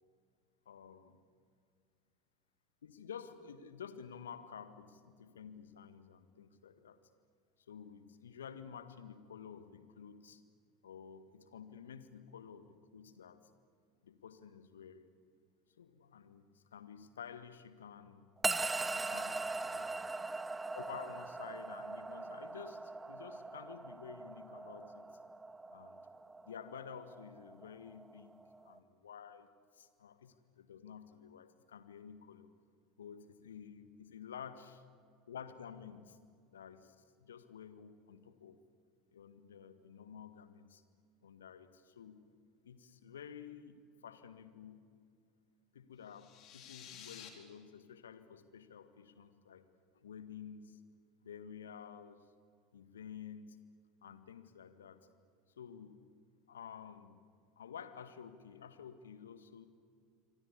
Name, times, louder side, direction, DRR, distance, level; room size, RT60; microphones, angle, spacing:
voice 1, 0.7-1.2 2.8-7.0 7.7-10.4 10.8-13.4 14.0-15.1 15.8-18.3 18.9-20.0 20.7-25.2 25.7-26.0 26.5-28.4 28.7-32.5 33.0-34.8 35.3-36.2 36.5-38.6 39.1-40.8 41.2-42.2 42.6-44.9 45.7-49.6 49.9-50.8 51.2-52.2 52.7-53.6 54.0-55.1 55.6-56.0 56.5-57.2 57.6-59.7, left 7 dB, 75° left, 11 dB, 1.8 m, -51 dB
sound 1, 18.4-28.8, right 3 dB, 15° right, 1.1 m, -41 dB
sound 2, 46.0-47.3, left 9 dB, 50° left, 4.1 m, -52 dB
28.0 x 24.5 x 8.5 m, 2.2 s
figure-of-eight pair, 75°, 0 cm